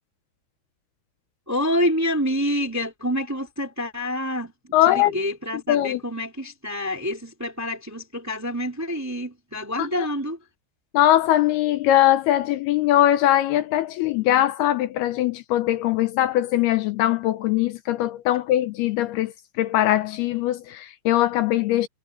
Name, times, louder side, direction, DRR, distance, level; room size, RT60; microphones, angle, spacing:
voice 1, 1.5-10.4, equal, 5° right, 1.8 m, -27 dB
voice 2, 4.7-5.2 5.7-6.0 9.8-10.1 10.9-21.9, left 13 dB, 80° left, 2.6 m, -21 dB
omnidirectional pair, 4.9 m